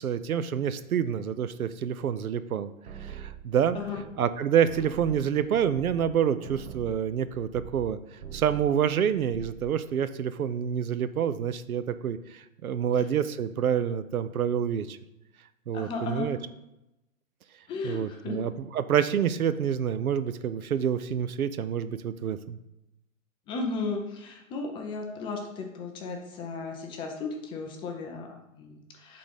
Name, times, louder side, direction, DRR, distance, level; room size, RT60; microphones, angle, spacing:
voice 1, 0.0-2.7 3.0-3.8 4.2-15.0 15.7-16.4 17.8-22.6, right 8 dB, 85° right, 13 dB, 0.6 m, -27 dB
sound 1, 2.8-4.4 4.6-7.9 8.2-8.8 9.1-9.7, right 8 dB, 50° right, 1.4 m, -43 dB
voice 2, 15.7-16.3 17.7-18.4 23.5-29.2, left 4 dB, 15° left, 2 dB, 0.4 m, -35 dB
7.4 x 3.9 x 5.0 m, 0.90 s
hypercardioid pair, 120°, 42 cm